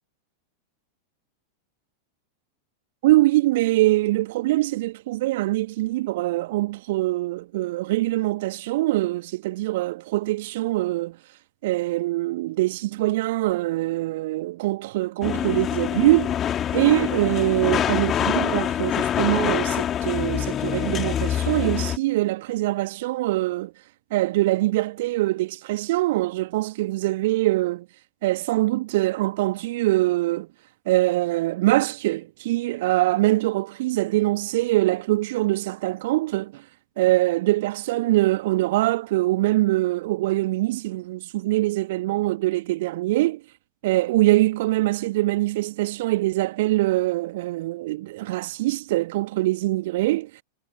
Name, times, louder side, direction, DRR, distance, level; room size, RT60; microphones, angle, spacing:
voice 1, 3.0-11.2 11.6-16.4 16.7-23.7 24.1-27.9 28.2-30.5 30.9-36.6 37.0-43.4 43.8-50.4, right 18 dB, 55° right, 1.9 m, -23 dB
sound 1, 15.2-22.0, left 10 dB, 25° left, 3.0 m, -25 dB
figure-of-eight pair, 90°, 0 cm